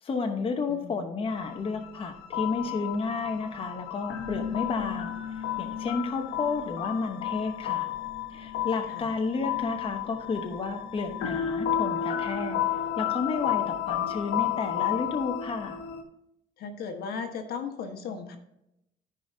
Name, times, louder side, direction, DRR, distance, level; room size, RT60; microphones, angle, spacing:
voice 1, 0.0-5.1 5.6-7.9 8.3-12.6 13.0-15.8, left 4 dB, 35° left, 4 dB, 1.0 m, -31 dB
voice 2, 0.7-1.0 8.9-9.1 16.6-18.4, left 5 dB, 70° left, 5 dB, 1.3 m, -36 dB
sound 1, 1.3-16.0, left 10 dB, 85° left, 1.2 m, -32 dB
14.0 x 5.2 x 2.8 m, 0.83 s
cardioid pair, 110°, 17 cm